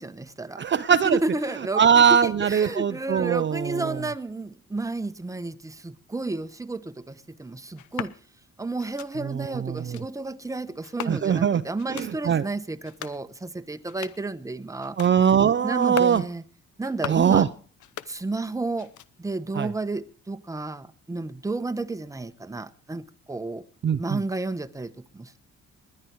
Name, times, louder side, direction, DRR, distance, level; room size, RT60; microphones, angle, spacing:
voice 1, 0.0-0.6 1.0-8.1 8.6-15.0 15.6-16.4 16.8-17.5 18.1-18.9 19.2-23.6 24.0-25.4, right 2 dB, 10° right, 1.0 m, -32 dB
voice 2, 0.6-1.2 1.7-4.0 9.2-10.0 11.0-11.6 11.9-12.4 15.0-16.2 17.1-17.5 19.5-19.7 23.8-24.2, right 7 dB, 40° right, 0.6 m, -21 dB
sound 1, 7.7-8.2 8.8-9.1 9.7-10.1 10.8-11.4 11.8-12.1 12.7-13.2 13.7-14.3 14.8-15.2 15.7-16.2 16.7-17.3 17.7-18.5 18.7-19.3, left 12 dB, 75° left, 0.9 m, -39 dB
19.5 x 11.0 x 4.7 m
cardioid pair, 90°, 30 cm